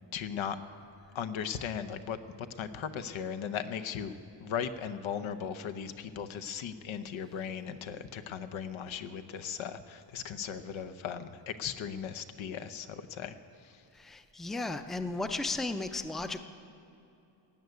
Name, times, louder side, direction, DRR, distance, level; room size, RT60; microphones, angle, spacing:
voice 1, 0.1-0.6 1.1-4.1 4.4-13.4 13.6-13.8, left 8 dB, 90° left, 10 dB, 0.9 m, -37 dB
voice 2, 13.9-16.4, left 2 dB, ahead, 9 dB, 0.4 m, -35 dB
16.0 x 7.9 x 9.4 m, 2.8 s
wide cardioid pair, 140°, 46 cm